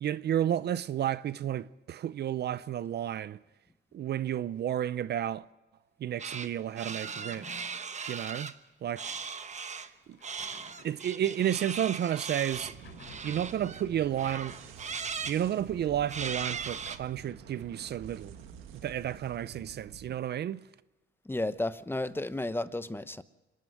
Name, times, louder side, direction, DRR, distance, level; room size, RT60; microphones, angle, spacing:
voice 1, 0.0-3.4 3.9-5.4 6.0-7.5 8.1-8.5 8.8-9.2 10.1-10.2 10.8-12.8 13.2-14.6 15.2-18.4 18.8-20.6, right 10 dB, 55° right, 0.6 m, -31 dB
sound 1, 6.2-6.5 6.8-8.5 9.0-9.9 10.2-13.8 14.2-15.4 16.1-17.0, right 5 dB, 35° right, 1.1 m, -38 dB
sound 2, 6.7-7.9 9.0-9.3 10.1-11.6 12.6-13.7, left 6 dB, 70° left, 3.0 m, -54 dB
sound 3, 12.5-20.2, right 8 dB, 90° right, 1.7 m, -49 dB
voice 2, 21.3-23.2, left 2 dB, 10° left, 0.9 m, -33 dB
26.5 x 11.0 x 9.2 m
cardioid pair, 90°, 20 cm